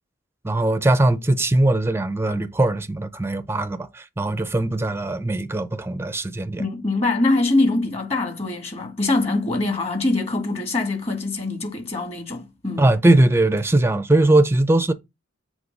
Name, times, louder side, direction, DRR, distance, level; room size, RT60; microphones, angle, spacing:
voice 1, 0.4-6.6 12.8-14.9, right 2 dB, 10° right, 0.6 m, -20 dB
voice 2, 6.6-12.9, left 2 dB, 30° left, 2.0 m, -23 dB
7.8 x 3.2 x 5.3 m
head